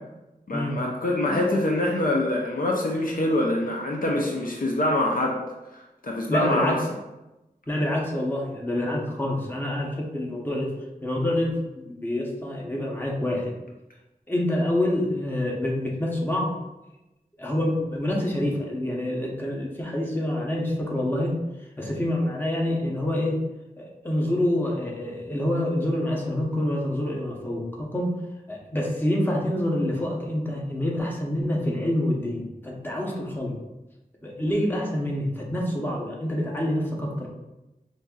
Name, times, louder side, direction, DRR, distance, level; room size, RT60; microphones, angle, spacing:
voice 1, 0.5-5.4 6.0-6.8, left 1 dB, 65° left, -1 dB, 0.5 m, -24 dB
voice 2, 6.3-6.8 7.7-10.7 11.0-13.5 14.3-16.6 17.4-21.4 21.8-23.4 23.8-28.2 28.5-33.6 34.2-37.3, left 1 dB, 15° left, -2 dB, 0.8 m, -27 dB
5.2 x 2.6 x 2.3 m, 1.0 s
wide cardioid pair, 60°, 15 cm